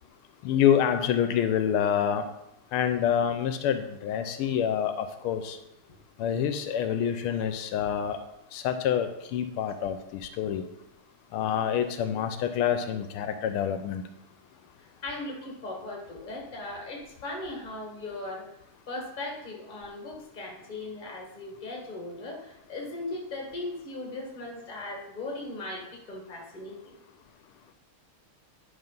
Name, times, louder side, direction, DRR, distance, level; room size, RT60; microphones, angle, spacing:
voice 1, 0.4-2.2 2.7-5.6 6.2-8.2 8.5-10.6 11.3-14.0, left 9 dB, 80° left, 9 dB, 1.5 m, -27 dB
voice 2, 14.8-18.5 18.9-26.9, left 2 dB, 25° left, 0 dB, 1.4 m, -38 dB
9.9 x 3.9 x 5.3 m, 0.84 s
omnidirectional pair, 2.4 m